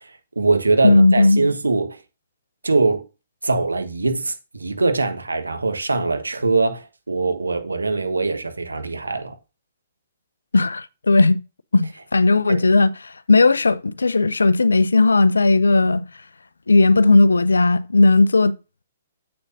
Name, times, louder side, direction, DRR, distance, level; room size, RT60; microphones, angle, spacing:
voice 1, 0.0-2.0 2.6-3.0 3.4-9.3 12.5-12.6, right 3 dB, 80° right, 1.3 m, -22 dB
voice 2, 0.8-1.4 10.5-11.4 11.7-16.1 16.7-18.5, left 3 dB, 80° left, 0.5 m, -16 dB
7.8 x 6.9 x 2.6 m
figure-of-eight pair, 120°, 0 cm